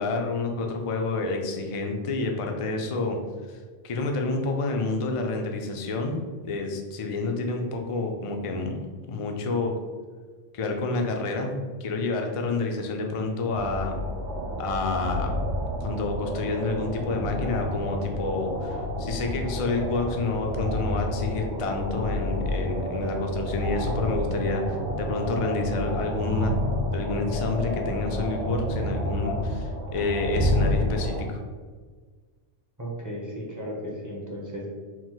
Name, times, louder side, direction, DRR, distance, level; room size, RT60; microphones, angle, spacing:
voice 1, 0.0-3.2 3.5-6.2 6.4-8.8 9.1-9.7 10.5-11.5 11.8-13.9 14.6-15.3 15.8-26.5 26.9-31.4, left 3 dB, 50° left, 3 dB, 0.4 m, -29 dB
sound 1, 13.5-31.2, equal, 80° right, 1.0 m, -29 dB
voice 2, 32.8-34.7, equal, 20° right, -3 dB, 0.6 m, -35 dB
4.7 x 2.0 x 3.8 m, 1.5 s
omnidirectional pair, 1.2 m